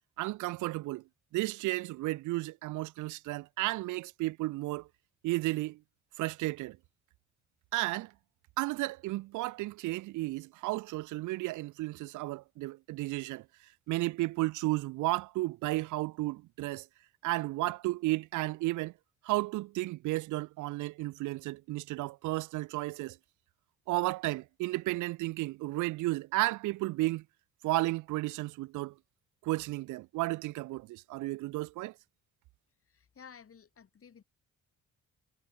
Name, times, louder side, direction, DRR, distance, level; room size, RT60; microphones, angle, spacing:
voice 1, 0.2-1.0 1.3-4.9 5.2-5.8 6.2-6.8 7.7-8.1 8.6-13.5 13.9-16.9 17.2-18.9 19.2-23.2 23.9-27.2 27.6-28.9 29.4-31.9, right 19 dB, 80° right, 0.5 m, -33 dB
voice 2, 32.9-34.2, left 7 dB, 45° left, 6.7 m, -54 dB
cardioid pair, 90°, 30 cm